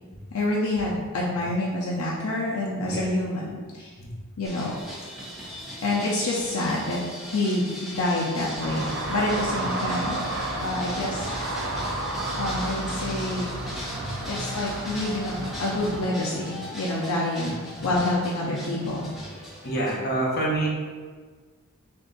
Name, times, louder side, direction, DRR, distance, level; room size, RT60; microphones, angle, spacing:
voice 1, 0.3-3.9 4.4-4.7 5.8-7.0 7.2-10.2 10.6-11.3 12.4-13.5 14.2-19.1, left 1 dB, 75° left, -5 dB, 0.6 m, -27 dB
sound 1, 4.4-20.0, equal, ahead, 1.0 m, -38 dB
sound 2, 8.6-16.0, right 2 dB, 60° right, 0.5 m, -32 dB
voice 2, 19.6-20.7, right 2 dB, 50° left, -4 dB, 0.9 m, -27 dB
3.4 x 2.6 x 3.9 m, 1.5 s
head